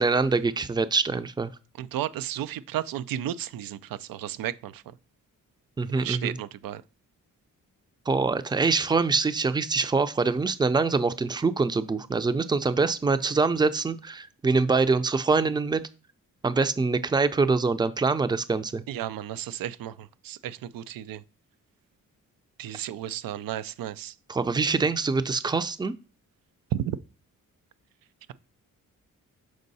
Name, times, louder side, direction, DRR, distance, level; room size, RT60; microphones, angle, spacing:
voice 1, 0.0-1.5 5.8-6.4 8.1-15.8 16.4-18.8 24.3-25.9, right 4 dB, 15° right, 0.5 m, -24 dB
voice 2, 1.8-4.8 5.9-6.8 18.9-21.2 22.6-24.1 26.7-27.0, right 11 dB, 85° right, 0.5 m, -33 dB
6.4 x 4.5 x 4.0 m
cardioid pair, 85°, 33 cm